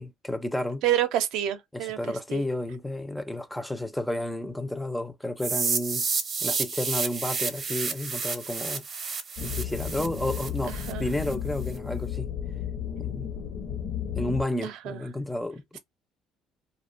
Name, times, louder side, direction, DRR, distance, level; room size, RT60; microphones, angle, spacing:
voice 1, 0.0-0.8 1.7-6.1 6.4-8.8 9.4-12.3 13.0-13.3 14.2-15.8, left 1 dB, 5° left, 0.4 m, -31 dB
voice 2, 0.8-2.4 10.6-11.1 14.6-15.0, right 12 dB, 75° right, 0.5 m, -29 dB
sound 1, 5.4-11.3, right 5 dB, 35° right, 0.6 m, -31 dB
sound 2, 9.4-14.4, left 9 dB, 75° left, 0.7 m, -33 dB
2.5 x 2.1 x 2.4 m
cardioid pair, 120°, 0 cm